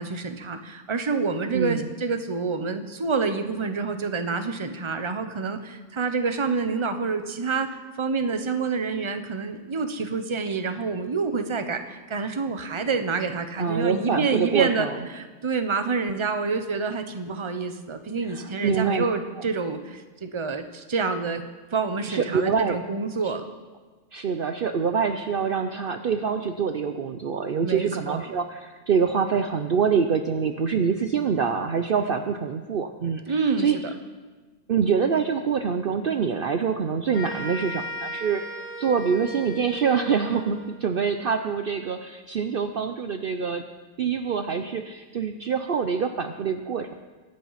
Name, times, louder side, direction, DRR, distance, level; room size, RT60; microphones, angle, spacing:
voice 1, 0.0-7.7 8.0-14.9 15.1-21.4 21.7-23.4 27.6-28.2 33.3-33.7, right 4 dB, 25° right, 8 dB, 0.9 m, -27 dB
voice 2, 1.5-1.9 13.6-15.0 18.3-19.0 22.1-22.8 23.2-23.4 24.1-33.8 34.7-38.4 38.8-43.6 44.0-46.9, right 6 dB, 55° right, 7 dB, 0.8 m, -25 dB
sound 1, 37.1-40.8, right 2 dB, 80° right, 5.3 m, -36 dB
22.5 x 8.8 x 5.8 m, 1.3 s
omnidirectional pair, 1.3 m